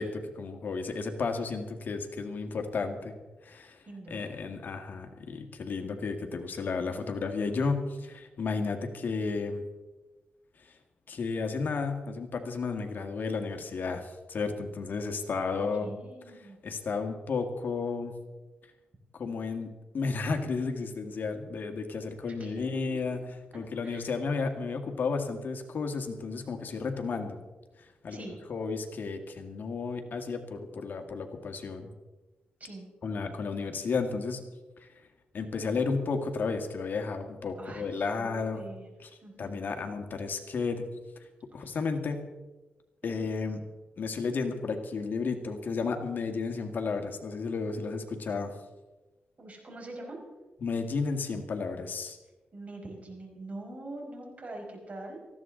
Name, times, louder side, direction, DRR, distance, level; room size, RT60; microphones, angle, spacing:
voice 1, 0.0-3.1 3.4-3.8 4.1-9.6 10.6-10.7 11.1-15.9 16.6-18.1 19.1-23.2 23.5-27.4 28.0-31.9 33.0-34.4 34.8-34.9 35.3-38.6 39.0-39.1 39.4-40.8 41.5-42.2 43.0-43.6 44.0-48.5 50.6-52.2, left 4 dB, 60° left, 5 dB, 1.8 m, -33 dB
voice 2, 3.9-4.4 15.6-16.6 22.4-22.6 22.9-23.0 23.8-24.1 28.1-28.4 32.6-32.9 37.6-38.9 39.2-39.6 41.6-41.8 43.0-43.3 49.4-50.2 52.5-55.2, right 2 dB, 45° right, 0 dB, 5.5 m, -44 dB
19.0 x 14.5 x 3.8 m, 1.2 s
cardioid pair, 85°, 4 cm